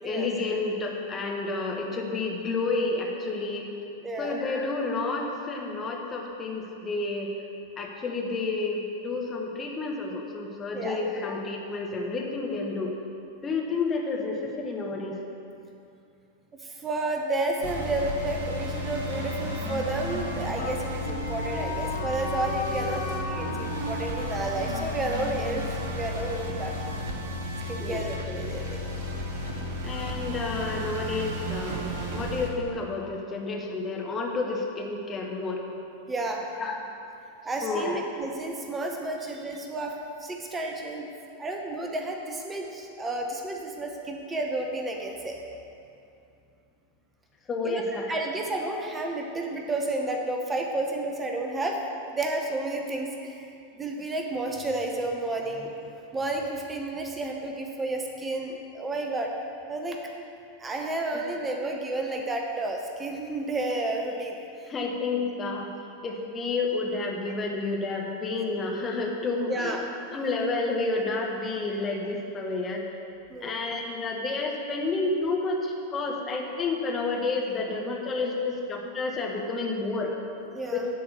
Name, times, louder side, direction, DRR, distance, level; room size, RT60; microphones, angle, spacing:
voice 1, 0.0-3.7 4.2-7.3 7.8-12.9 13.4-15.2 27.8-28.0 29.8-35.6 36.6-36.8 37.6-38.0 47.5-48.0 64.7-65.7 66.0-69.7 70.1-72.8 73.4-80.1, left 3 dB, 20° left, 0 dB, 1.4 m, -30 dB
voice 2, 4.0-4.4 10.7-11.0 16.6-26.7 27.7-28.8 36.1-36.4 37.4-39.9 40.2-41.1 41.4-45.4 47.6-47.8 48.1-53.5 53.8-59.3 59.7-60.0 60.6-64.4 69.4-69.8 73.3-73.6 80.5-80.8, right 2 dB, 15° right, 1 dB, 0.9 m, -31 dB
sound 1, 17.6-32.5, left 1 dB, 55° right, 1.4 m, -33 dB
Wind instrument woodwind instrument, 19.1-26.4, left 1 dB, 80° right, 1.6 m, -37 dB
10.5 x 4.7 x 7.0 m, 2.6 s
figure-of-eight pair, 90°, 0 cm